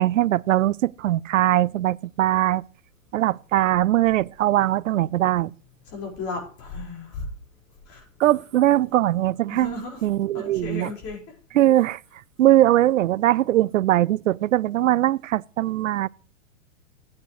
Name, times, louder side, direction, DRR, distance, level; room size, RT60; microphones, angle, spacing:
voice 1, 0.0-2.6 3.1-5.5 8.2-10.9 11.5-12.0 12.4-16.1, right 14 dB, 75° right, 0.5 m, -21 dB
voice 2, 5.9-7.3 7.9-8.0 9.5-10.0 10.3-11.2, left 3 dB, 35° left, 4.9 m, -34 dB
15.0 x 9.4 x 3.2 m
hypercardioid pair, 120°, 40 cm